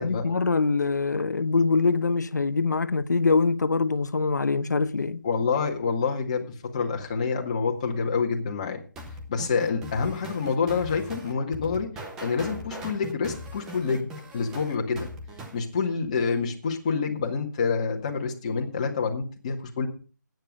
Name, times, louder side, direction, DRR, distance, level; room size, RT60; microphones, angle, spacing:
voice 1, 0.0-5.2, left 4 dB, 65° left, 1.1 m, -24 dB
voice 2, 5.2-8.8 9.3-11.9 12.2-15.1 15.5-19.9, left 5 dB, 20° left, 1.9 m, -27 dB
sound 1, 8.9-15.6, equal, 5° right, 0.6 m, -40 dB
13.5 x 9.4 x 5.3 m
hypercardioid pair, 175°, 10 cm